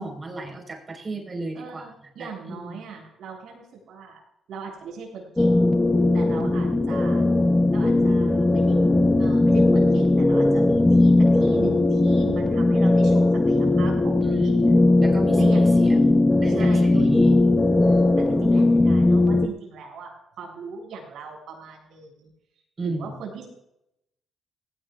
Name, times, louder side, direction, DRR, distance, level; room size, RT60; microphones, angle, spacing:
voice 1, 0.0-1.9 2.2-2.8 6.4-6.7 14.2-17.4 22.8-23.2, right 2 dB, 30° right, 2 dB, 4.8 m, -34 dB
voice 2, 1.5-4.2 4.5-5.6 6.1-7.2 7.7-8.8 9.2-14.6 15.4-16.1 16.5-17.4 17.8-22.3 22.8-23.5, right 5 dB, 75° right, -1 dB, 7.0 m, -40 dB
sound 1, 5.4-19.5, left 2 dB, 15° left, 0.9 m, -18 dB
18.5 x 17.5 x 2.5 m, 0.81 s
cardioid pair, 90°, 0 cm